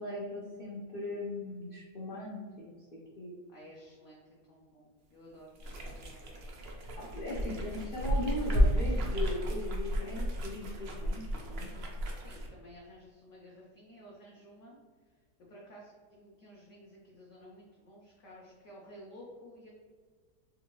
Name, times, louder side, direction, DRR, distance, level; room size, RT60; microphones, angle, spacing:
voice 1, 0.0-2.9 3.2-3.3 6.7-11.7, left 1 dB, 85° left, -5 dB, 0.4 m, -39 dB
voice 2, 3.5-6.5 6.8-7.9 12.1-14.8 15.5-19.7, equal, 60° left, -4 dB, 0.8 m, -53 dB
sound 1, 5.6-12.5, equal, 80° right, 0.5 m, -32 dB
3.8 x 2.5 x 2.9 m, 1.5 s
omnidirectional pair, 1.8 m